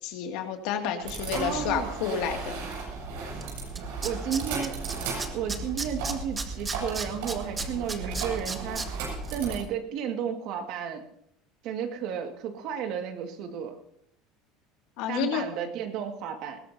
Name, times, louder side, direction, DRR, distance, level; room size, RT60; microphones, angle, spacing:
voice 1, 0.0-2.6 15.0-15.4, left 8 dB, 70° left, 4 dB, 2.4 m, -30 dB
sound 1, 1.0-9.6, right 3 dB, 85° right, 7.3 m, -35 dB
voice 2, 1.3-2.0 4.0-4.8 5.3-11.0 11.6-13.8 15.1-16.6, right 8 dB, 60° right, 5 dB, 2.1 m, -33 dB
Tools, 3.4-3.5 3.8-4.9 5.2-8.9 9.2-9.3, right 4 dB, 15° right, 1.4 m, -33 dB
20.5 x 17.0 x 2.8 m, 0.71 s
cardioid pair, 140°, 0 cm